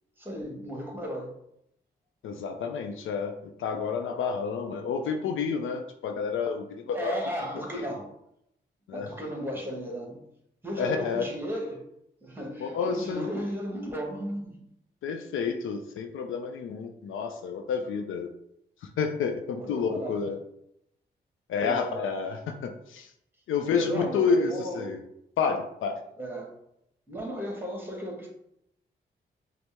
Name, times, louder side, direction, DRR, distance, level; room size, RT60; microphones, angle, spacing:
voice 1, 0.2-1.4 6.8-8.1 8.9-10.2 10.6-11.9 12.2-14.7 19.6-20.3 21.6-22.0 23.6-24.9 26.2-26.6 27.1-28.3, right 1 dB, 10° right, 0 dB, 1.4 m, -35 dB
voice 2, 2.2-7.2 7.7-7.8 8.9-9.1 10.8-11.3 12.6-13.3 15.0-18.3 18.8-20.4 21.5-23.1 23.5-25.0 25.4-26.0, left 5 dB, 70° left, 6 dB, 0.4 m, -29 dB
5.0 x 2.0 x 3.4 m, 0.77 s
hypercardioid pair, 40°, 21 cm